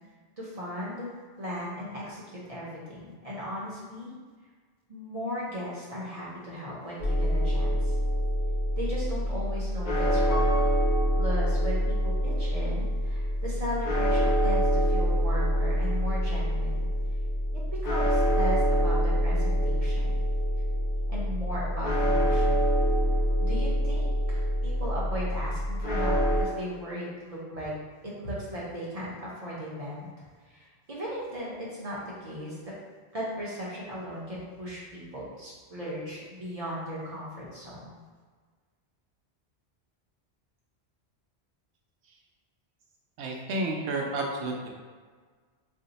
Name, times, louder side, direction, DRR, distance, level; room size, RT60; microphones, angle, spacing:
voice 1, 0.4-1.1 1.4-4.1 4.9-7.9 8.8-10.7 11.2-16.9 17.5-20.2 21.1-22.8 23.4-27.7 28.0-30.1 30.4-32.7 33.1-37.9, equal, 40° right, -6 dB, 0.6 m, -37 dB
sound 1, 7.0-26.4, equal, 60° left, 0.8 m, -26 dB
Piano, 10.3-12.3 12.8-12.9, left 2 dB, 85° left, 0.9 m, -40 dB
voice 2, 43.2-44.7, right 2 dB, 80° right, 0 dB, 0.8 m, -31 dB
2.6 x 2.1 x 3.9 m, 1.5 s
omnidirectional pair, 1.1 m